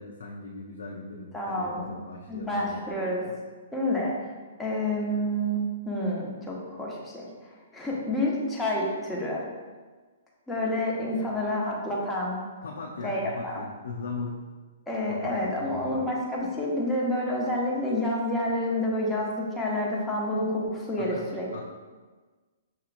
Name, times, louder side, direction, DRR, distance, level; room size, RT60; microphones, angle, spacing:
voice 1, 0.0-2.9 11.1-11.2 12.6-14.4 15.1-16.0 21.0-21.2 21.5-21.6, left 3 dB, 80° left, -1 dB, 0.5 m, -39 dB
voice 2, 1.3-1.9 2.3-3.3 3.7-4.1 4.6-9.4 10.5-12.4 13.0-13.7 14.9-21.5, left 1 dB, 5° left, -5 dB, 0.9 m, -29 dB
5.9 x 2.8 x 2.5 m, 1.4 s
hypercardioid pair, 140°, 0 cm